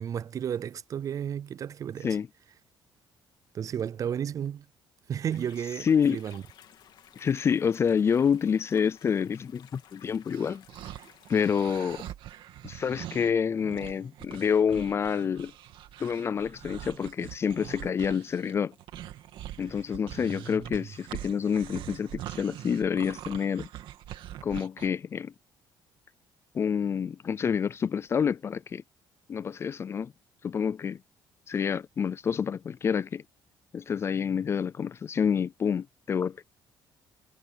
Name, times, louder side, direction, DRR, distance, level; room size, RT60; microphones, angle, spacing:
voice 1, 0.0-2.2 3.5-4.7 5.1-6.4 20.1-20.9, right 9 dB, 40° right, 0.4 m, -33 dB
sound 1, 5.3-12.1, left 10 dB, 60° left, 3.0 m, -55 dB
voice 2, 5.8-6.2 7.2-10.6 11.3-12.0 12.6-15.5 16.0-18.7 19.6-23.7 24.4-25.3 26.5-28.8 29.3-30.1 30.4-31.0 31.5-33.2 33.7-36.4, left 7 dB, 30° left, 0.3 m, -28 dB
sound 2, 10.3-24.9, right 12 dB, 75° right, 2.4 m, -43 dB
cardioid pair, 140°, 9 cm